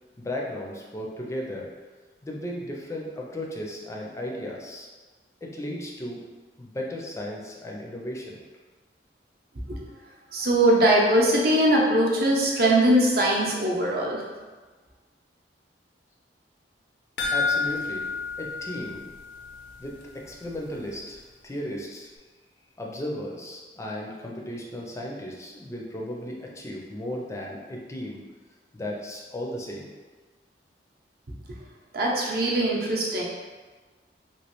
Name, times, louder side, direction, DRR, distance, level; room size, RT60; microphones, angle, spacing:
voice 1, 0.2-1.7 2.2-4.9 5.4-6.2 6.6-8.4 17.3-18.1 18.4-19.1 19.8-22.1 22.8-28.2 28.7-29.9, left 1 dB, 15° left, -2 dB, 0.4 m, -35 dB
voice 2, 10.3-14.2 31.9-33.2, right 1 dB, 55° right, -3 dB, 0.6 m, -21 dB
sound 1, 17.2-19.7 20.0-20.1 20.5-20.6, left 4 dB, 80° left, 0.5 m, -29 dB
3.1 x 2.8 x 2.9 m, 1.3 s
head